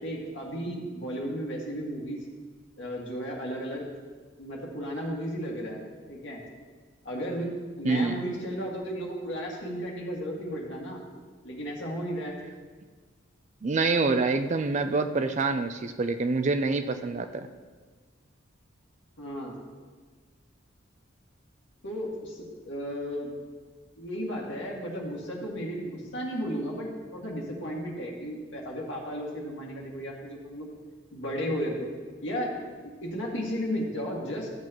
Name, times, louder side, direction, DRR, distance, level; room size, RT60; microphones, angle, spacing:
voice 1, 0.0-2.2 2.8-3.9 4.4-5.8 6.1-6.4 7.0-7.5 7.8-11.0 11.4-12.4 19.2-19.5 21.8-23.3 24.0-30.7 31.1-31.9 32.2-32.5 33.0-34.5, equal, 65° left, -3 dB, 2.0 m, -34 dB
voice 2, 7.8-8.2 13.6-17.5, right 3 dB, 35° right, 9 dB, 0.4 m, -26 dB
13.5 x 7.7 x 3.0 m, 1.5 s
head